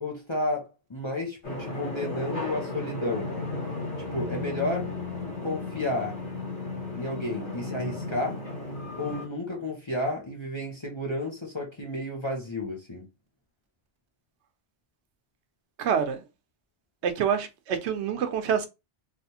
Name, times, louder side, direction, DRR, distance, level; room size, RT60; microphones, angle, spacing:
voice 1, 0.0-3.4 4.0-4.9 5.4-6.2 6.9-8.4 9.0-13.0, left 1 dB, 30° left, 0.7 m, -32 dB
sound 1, 1.4-9.2, left 3 dB, 75° left, 1.9 m, -34 dB
voice 2, 15.8-16.2 17.0-18.7, right 7 dB, 75° right, 0.9 m, -26 dB
3.3 x 2.4 x 2.7 m
omnidirectional pair, 1.2 m